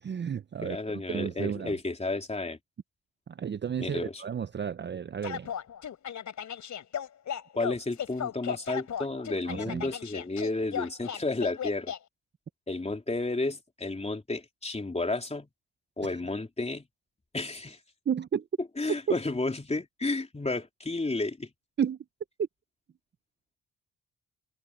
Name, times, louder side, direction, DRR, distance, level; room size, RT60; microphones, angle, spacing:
voice 1, 0.0-1.8 3.3-5.5 9.5-9.9 18.1-18.5 19.1-19.2 21.8-22.0 22.4-22.5, right 7 dB, 35° right, 0.6 m, -32 dB
voice 2, 0.6-2.6 3.8-4.2 7.5-11.9 12.7-15.5 16.0-16.9 17.3-17.8 18.8-21.5, left 2 dB, 20° left, 3.3 m, -32 dB
sound 1, 5.2-12.0, left 8 dB, 65° left, 4.5 m, -36 dB
cardioid pair, 70°, 32 cm